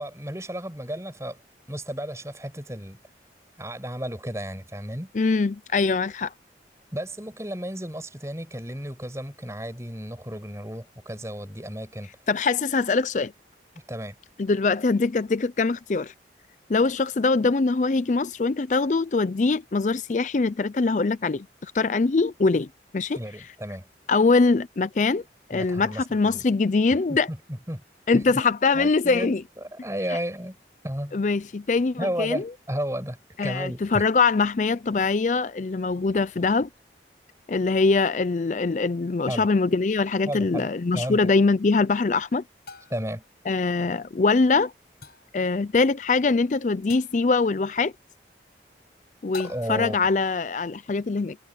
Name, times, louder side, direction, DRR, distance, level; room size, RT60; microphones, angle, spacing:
voice 1, 0.0-1.4 1.7-3.0 3.6-5.1 6.9-12.1 13.9-14.1 23.1-23.9 25.5-26.4 27.1-27.8 28.1-28.4 28.7-30.6 30.8-31.2 32.0-34.0 39.3-39.5 40.3-40.7 40.9-41.3 42.9-43.2 49.4-50.1, equal, 15° right, 6.5 m, -33 dB
voice 2, 5.1-6.3 12.3-13.3 14.4-16.1 16.7-22.7 22.9-23.2 24.1-25.2 25.5-27.3 28.1-29.4 31.1-32.5 33.4-36.7 37.5-42.4 43.5-44.7 45.3-47.9 49.2-51.4, left 4 dB, 45° left, 0.4 m, -23 dB
sound 1, 40.6-40.7 42.7-43.2 45.0-45.4 46.9-47.3 49.3-50.0, left 4 dB, 65° left, 5.1 m, -43 dB
head